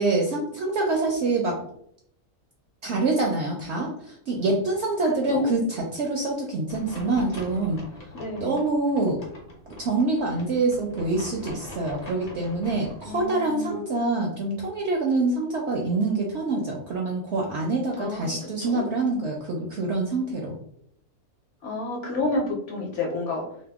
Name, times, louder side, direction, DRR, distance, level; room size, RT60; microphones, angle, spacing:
voice 1, 0.0-1.6 2.8-7.8 8.4-9.2 9.7-20.6, right 3 dB, 70° right, -1 dB, 0.7 m, -26 dB
voice 2, 5.1-5.5 8.1-8.6 13.0-13.8 18.0-18.8 21.6-23.5, left 2 dB, 60° left, -1 dB, 0.9 m, -30 dB
sound 1, 6.7-13.2, left 1 dB, 35° left, 0.7 m, -43 dB
2.7 x 2.0 x 3.4 m, 0.70 s
omnidirectional pair, 1.6 m